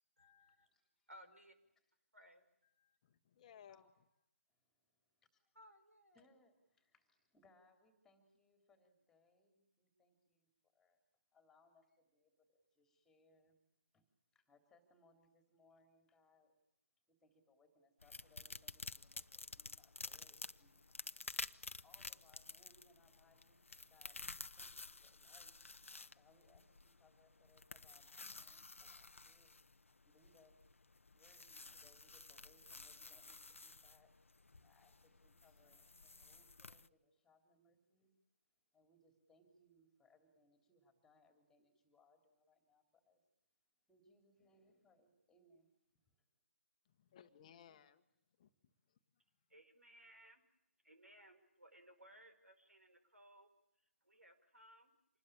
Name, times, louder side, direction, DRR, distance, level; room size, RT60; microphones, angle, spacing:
voice 1, 0.2-0.7 1.1-1.6 2.1-3.0 5.6-6.3 49.5-50.4 50.8-53.5 54.0-54.9, equal, 80° right, 5.4 m, -62 dB
voice 2, 0.7-1.1 1.8-1.9 3.7-3.9 4.5-5.5 6.1-11.0 11.3-13.6 13.9-14.0 14.3-16.5 17.1-21.0 21.8-25.7 26.2-29.5 30.0-30.6 31.1-34.2 34.6-38.1 38.7-43.2 43.9-45.7 46.0-46.1, left 2 dB, 5° left, 3.4 m, -72 dB
voice 3, 3.0-3.9 47.0-48.0 48.4-48.5 48.9-49.0, left 9 dB, 30° left, 1.5 m, -61 dB
sound 1, 18.0-36.9, left 3 dB, 70° left, 0.9 m, -52 dB
27.0 x 20.5 x 8.8 m
figure-of-eight pair, 145°, 7 cm